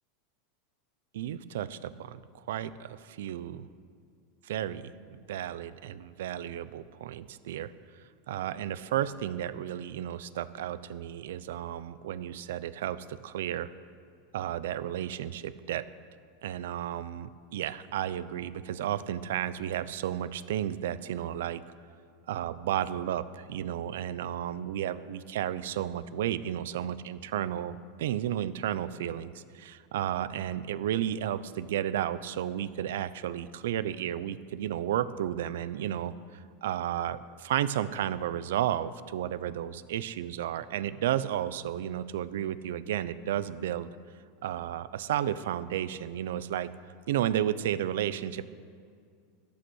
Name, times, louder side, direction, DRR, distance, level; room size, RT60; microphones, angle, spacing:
voice 1, 1.1-3.6 4.4-7.7 8.3-13.7 14.3-15.9 16.4-21.6 22.3-36.1 36.6-43.9 44.4-46.7 47.1-48.4, right 11 dB, 80° right, 16 dB, 0.6 m, -33 dB
14.0 x 11.5 x 6.4 m, 2.3 s
supercardioid pair, 165°, 0 cm